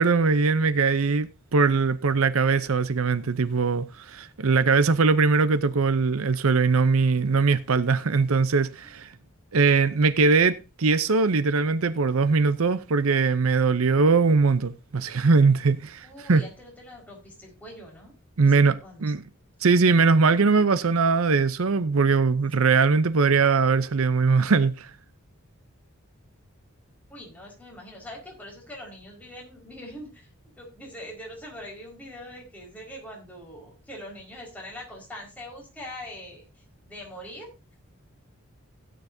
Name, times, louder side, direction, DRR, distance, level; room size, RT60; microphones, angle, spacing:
voice 1, 0.0-9.1 9.5-16.4 18.4-19.2 19.6-24.9, right 4 dB, 70° right, 0.7 m, -21 dB
voice 2, 16.0-18.1 18.4-18.5 18.8-19.1 27.1-30.3 30.6-37.5, left 1 dB, 5° left, 4.9 m, -43 dB
17.0 x 9.4 x 2.7 m
head